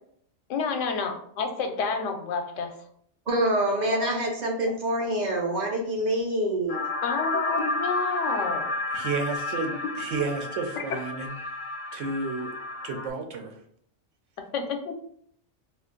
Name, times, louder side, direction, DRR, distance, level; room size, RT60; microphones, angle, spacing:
voice 1, 0.5-2.7 3.9-4.1 7.0-8.7 10.8-10.9 14.5-15.0, left 5 dB, 80° left, 5 dB, 0.9 m, -29 dB
voice 2, 3.3-6.8, right 1 dB, 45° right, -1 dB, 0.7 m, -26 dB
sound 1, 6.7-13.1, left 2 dB, 60° left, 0.5 m, -32 dB
voice 3, 8.9-11.3 11.9-12.5 12.8-13.6, right 4 dB, 80° right, 3 dB, 1.0 m, -31 dB
2.5 x 2.4 x 3.7 m, 0.66 s
omnidirectional pair, 1.3 m